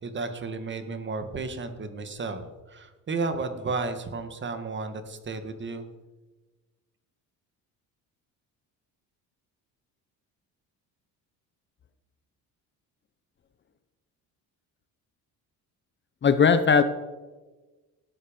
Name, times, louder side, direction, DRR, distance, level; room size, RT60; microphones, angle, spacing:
voice 1, 0.0-5.8, right 3 dB, 30° right, 9 dB, 1.8 m, -33 dB
voice 2, 16.2-16.8, left 6 dB, 30° left, 11 dB, 0.8 m, -18 dB
18.0 x 12.5 x 5.3 m, 1.2 s
cardioid pair, 145°, 37 cm